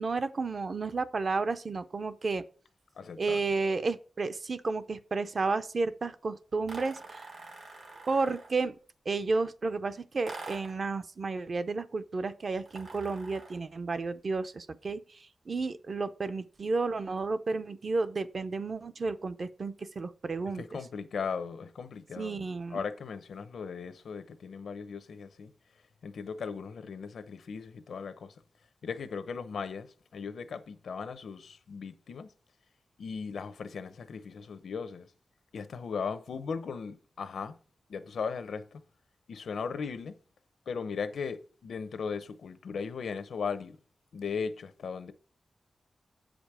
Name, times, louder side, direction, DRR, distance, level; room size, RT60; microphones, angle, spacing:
voice 1, 0.0-2.4 3.2-7.5 8.1-8.7 9.1-20.8 22.2-22.8, right 3 dB, 40° right, 0.5 m, -32 dB
voice 2, 3.0-3.4 20.6-22.4 22.7-25.5 26.0-28.3 28.8-29.9 30.1-32.3 33.0-35.1 35.5-37.5 37.9-38.8 39.3-40.1 40.7-43.8 44.1-45.1, left 5 dB, 90° left, 0.8 m, -37 dB
sound 1, 6.7-8.6 10.3-10.9 12.7-13.7, right 3 dB, 70° right, 2.2 m, -46 dB
8.1 x 5.1 x 6.1 m
wide cardioid pair, 180°, 0 cm